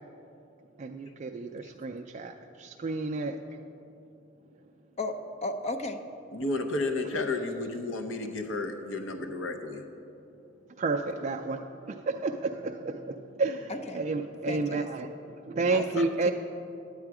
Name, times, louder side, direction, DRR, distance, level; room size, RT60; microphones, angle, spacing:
voice 1, 0.8-3.4 10.8-16.3, right 3 dB, 35° right, 4 dB, 0.3 m, -31 dB
voice 2, 5.0-6.0 13.7-14.0 14.5-14.9 15.7-16.3, left 2 dB, 35° left, 8 dB, 0.5 m, -35 dB
voice 3, 6.3-9.8 16.0-16.1, left 2 dB, 75° left, 5 dB, 0.7 m, -32 dB
9.5 x 8.9 x 4.8 m, 2.8 s
head